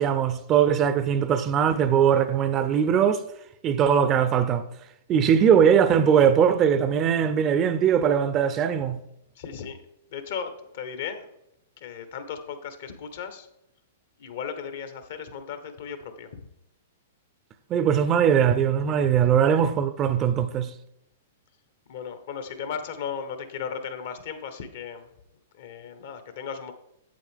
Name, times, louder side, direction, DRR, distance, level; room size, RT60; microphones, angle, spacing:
voice 1, 0.0-3.2 3.6-4.6 5.1-9.0 17.7-20.7, right 8 dB, 30° right, 0.5 m, -21 dB
voice 2, 9.3-9.8 10.1-11.3 11.8-13.5 14.2-16.4 21.9-25.1 25.5-26.7, left 7 dB, 60° left, 1.1 m, -36 dB
8.2 x 7.5 x 3.6 m
hypercardioid pair, 110°, 0 cm